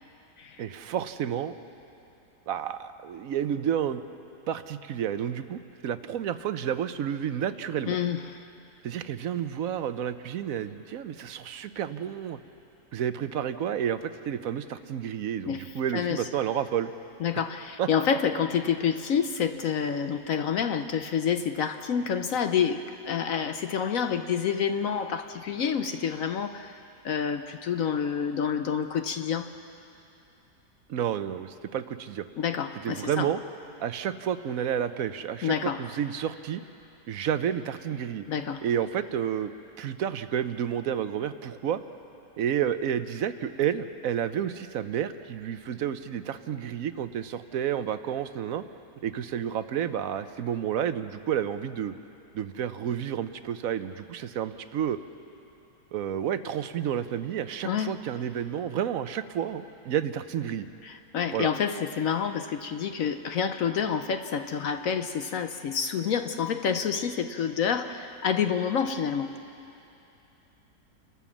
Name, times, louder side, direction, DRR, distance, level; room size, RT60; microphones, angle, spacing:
voice 1, 0.6-1.5 2.5-4.0 4.5-8.0 8.8-12.4 12.9-16.9 17.8-17.9 30.9-32.2 32.8-33.4 33.8-36.6 37.1-38.2 38.6-39.5 39.8-41.8 42.4-48.6 49.0-51.9 52.3-55.0 55.9-60.7 61.3-61.5, right 9 dB, 65° right, 11 dB, 1.0 m, -30 dB
voice 2, 7.9-8.4 15.5-16.2 17.2-26.8 27.0-29.5 32.4-33.3 35.4-35.8 38.3-38.6 57.6-57.9 60.8-69.3, left 7 dB, 65° left, 8 dB, 1.0 m, -28 dB
29.5 x 13.0 x 7.3 m, 2.8 s
omnidirectional pair, 1.7 m